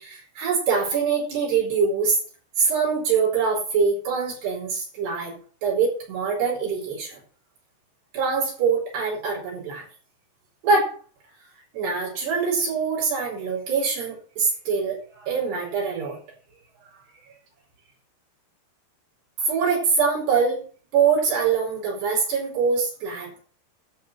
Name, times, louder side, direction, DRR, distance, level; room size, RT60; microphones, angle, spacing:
voice 1, 0.0-2.2 2.6-5.3 5.6-7.2 8.1-9.9 10.6-10.9 11.7-16.2 19.4-20.6 20.9-23.4, right 5 dB, 75° right, -3 dB, 7.0 m, -24 dB
13.0 x 7.8 x 7.6 m, 0.42 s
omnidirectional pair, 4.8 m